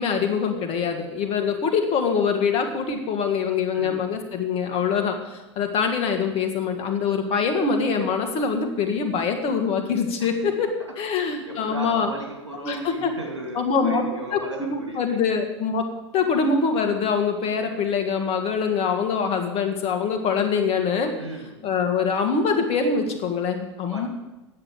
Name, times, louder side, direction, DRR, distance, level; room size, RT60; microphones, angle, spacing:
voice 1, 0.0-12.1 12.6-13.1 13.6-14.0 14.3-14.4 14.7-15.9 16.1-21.1 21.6-24.1, left 5 dB, 40° left, 5 dB, 2.3 m, -24 dB
voice 2, 3.7-4.1 10.2-10.5 11.4-15.2 21.2-21.6 23.9-24.1, right 2 dB, 90° right, 1 dB, 3.1 m, -36 dB
9.8 x 7.6 x 9.2 m, 1.0 s
hypercardioid pair, 85°, 15 cm